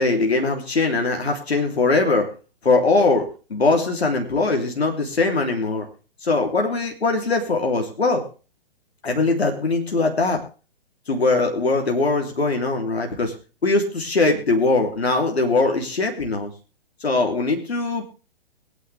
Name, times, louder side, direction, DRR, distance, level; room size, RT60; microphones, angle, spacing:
voice 1, 0.0-2.3 2.6-5.9 6.2-8.2 9.0-10.4 11.1-13.3 13.6-16.5 17.0-18.0, left 3 dB, 85° left, 3 dB, 3.3 m, -21 dB
22.0 x 9.9 x 3.4 m, 0.35 s
hypercardioid pair, 125°, 31 cm